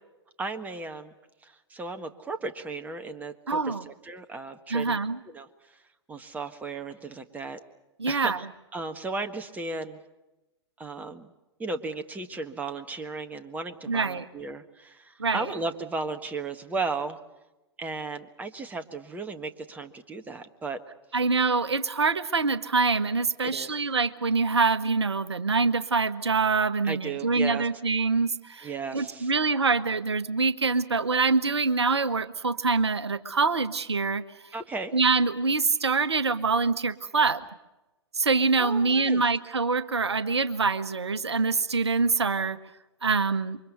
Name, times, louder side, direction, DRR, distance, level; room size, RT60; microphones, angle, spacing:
voice 1, 0.4-1.1 1.4-5.0 5.3-5.8 6.1-7.6 8.0-8.5 8.7-10.0 10.8-11.3 11.6-17.2 17.8-20.8 23.4-23.7 26.8-27.7 28.6-29.3 34.5-34.9 38.6-39.2, right 3 dB, 10° right, 7 dB, 1.5 m, -35 dB
voice 2, 3.5-3.8 4.7-5.2 8.0-8.4 13.9-14.2 15.2-15.5 21.1-34.2 34.9-37.4 38.1-42.6 43.0-43.6, right 4 dB, 70° right, 13 dB, 1.1 m, -25 dB
28.5 x 24.5 x 5.5 m, 1.0 s
figure-of-eight pair, 105°, 14 cm